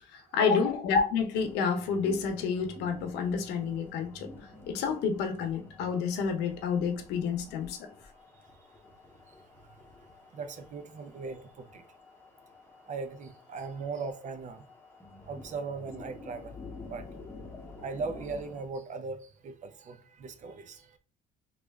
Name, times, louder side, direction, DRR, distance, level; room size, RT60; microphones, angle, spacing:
voice 1, 0.1-4.3 4.7-7.9, left 5 dB, 90° left, 0.8 m, -29 dB
sound 1, 1.3-18.7, left 2 dB, 15° left, 0.9 m, -50 dB
voice 2, 10.3-11.8 12.9-14.6 15.3-16.5 16.8-17.1 17.8-21.0, right 4 dB, 45° right, 0.6 m, -39 dB
3.2 x 2.5 x 3.5 m
cardioid pair, 110°, 17 cm